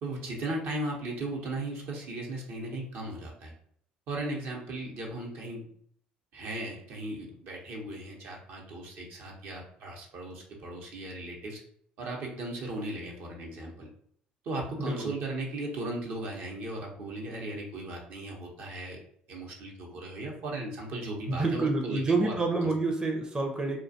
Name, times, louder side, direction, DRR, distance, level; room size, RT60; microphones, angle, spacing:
voice 1, 0.0-3.5 4.1-5.7 6.3-11.6 12.0-13.9 14.4-19.0 19.3-22.3 22.6-22.7, right 2 dB, 60° right, -1 dB, 0.7 m, -37 dB
voice 2, 14.8-15.1 21.3-23.8, right 3 dB, 15° right, 1 dB, 0.5 m, -28 dB
2.4 x 2.2 x 2.6 m, 0.63 s
hypercardioid pair, 60°, 4 cm